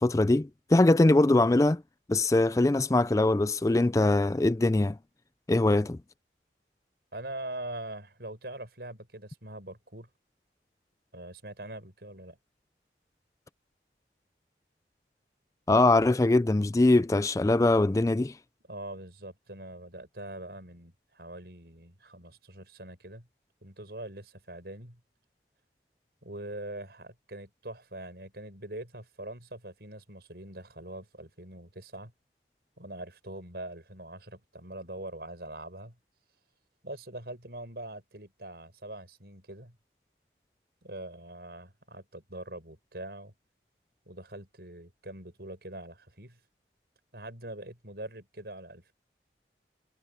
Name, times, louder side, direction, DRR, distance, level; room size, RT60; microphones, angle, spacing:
voice 1, 0.0-1.8 2.1-5.0 5.5-6.0 15.7-18.3, left 2 dB, 20° left, 0.4 m, -22 dB
voice 2, 7.1-10.1 11.1-12.4 18.7-23.3 23.6-25.0 26.2-32.1 32.8-35.9 36.8-39.8 40.8-43.3 44.1-46.4 47.1-48.9, right 1 dB, 65° right, 5.9 m, -43 dB
head